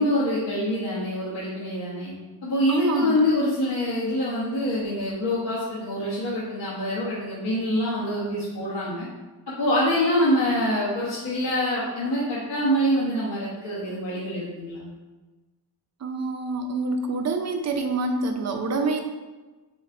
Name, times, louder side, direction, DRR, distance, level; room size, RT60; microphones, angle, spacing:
voice 1, 0.0-2.1 2.4-9.1 9.5-14.9, left 1 dB, 70° left, -10 dB, 1.4 m, -25 dB
voice 2, 2.7-3.2 16.0-19.0, right 3 dB, 40° right, 5 dB, 0.6 m, -26 dB
4.2 x 3.2 x 3.7 m, 1.2 s
cardioid pair, 95°, 42 cm